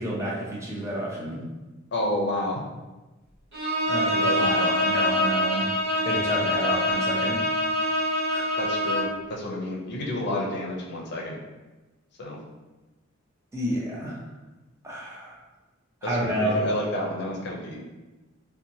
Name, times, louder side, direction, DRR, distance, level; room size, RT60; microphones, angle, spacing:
voice 1, 0.0-1.4 3.9-5.7 6.0-7.4 8.3-8.5 13.5-14.2 14.8-15.4 16.0-16.6, right 1 dB, 15° right, -5 dB, 0.6 m, -29 dB
voice 2, 1.9-2.6 4.3-4.7 6.5-6.6 8.6-11.4 12.2-12.4 16.0-17.8, left 1 dB, 55° left, -2 dB, 0.5 m, -30 dB
Bowed string instrument, 3.5-9.2, left 1 dB, 60° right, 1.2 m, -25 dB
2.8 x 2.2 x 2.6 m, 1.1 s
head